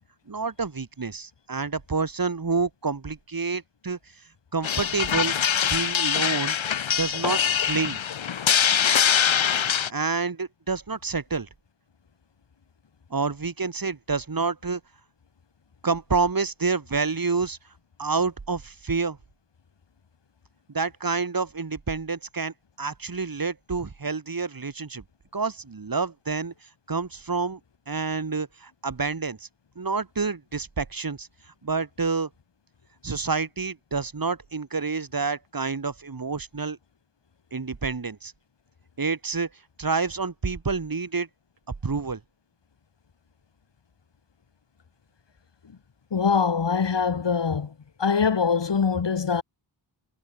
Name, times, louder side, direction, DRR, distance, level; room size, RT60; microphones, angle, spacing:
voice 1, 0.3-4.0 4.5-5.4 5.7-6.6 7.0-8.0 9.6-11.5 13.1-14.8 15.8-17.6 18.0-19.2 20.7-25.0 25.3-27.6 27.9-29.5 29.8-31.3 31.6-32.3 33.0-36.8 37.5-38.3 39.0-39.5 39.8-41.3 41.8-42.2, right 4 dB, 45° right, 2.1 m, -28 dB
sound 1, 4.6-9.9, left 8 dB, 80° left, 1.0 m, -23 dB
voice 2, 46.1-47.7 48.0-49.4, left 6 dB, 65° left, 1.7 m, -23 dB
wide cardioid pair, 90°, 46 cm